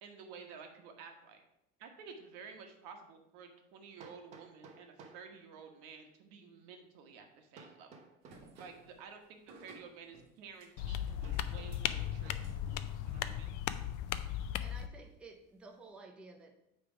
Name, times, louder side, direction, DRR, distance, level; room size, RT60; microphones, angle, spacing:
voice 1, 0.0-1.4 1.8-7.9 8.6-13.5, right 5 dB, 75° right, 4 dB, 1.3 m, -52 dB
Hammer, 2.4-2.5 4.0-5.3 7.6-8.9 11.2-12.5, right 4 dB, 35° right, 0.9 m, -55 dB
sound 1, 8.2-15.9, right 3 dB, 55° right, 1.5 m, -60 dB
sound 2, 10.8-14.9, left 11 dB, 65° left, 0.5 m, -37 dB
voice 2, 14.6-16.6, right 3 dB, 5° right, 3 dB, 0.4 m, -53 dB
8.9 x 3.4 x 4.8 m, 0.82 s
cardioid pair, 170°, 21 cm